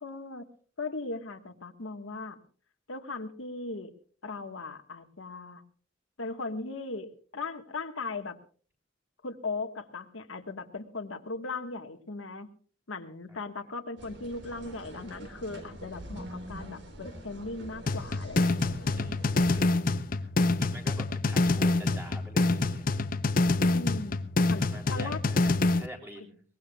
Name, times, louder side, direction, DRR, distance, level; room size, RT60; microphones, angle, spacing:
voice 1, 0.0-0.4 0.8-2.4 2.9-3.9 4.2-5.6 6.2-8.4 9.2-12.5 12.9-19.1 23.6-25.2, left 3 dB, 85° left, 6 dB, 1.5 m, -38 dB
sound 1, 14.0-19.6, right 1 dB, 60° right, 3.7 m, -45 dB
sound 2, 17.9-25.9, left 2 dB, 45° left, 0.6 m, -26 dB
voice 2, 19.0-20.3 20.6-22.9 24.6-26.4, equal, 10° right, 2 dB, 3.8 m, -47 dB
22.5 x 19.5 x 2.3 m, 0.43 s
head